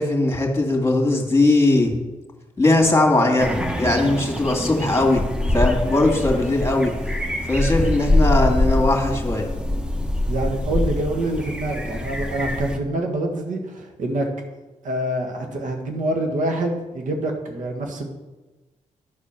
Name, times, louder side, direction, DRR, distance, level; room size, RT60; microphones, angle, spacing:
voice 1, 0.0-1.9 2.6-5.2 5.5-6.9 7.4-9.5, left 2 dB, 20° left, 2 dB, 2.3 m, -19 dB
sound 1, 3.4-12.8, left 1 dB, 5° right, 1.0 m, -24 dB
voice 2, 10.3-14.3 14.8-18.1, right 1 dB, 75° right, 3 dB, 1.6 m, -26 dB
10.5 x 4.3 x 6.3 m, 1.1 s
cardioid pair, 65°, 13 cm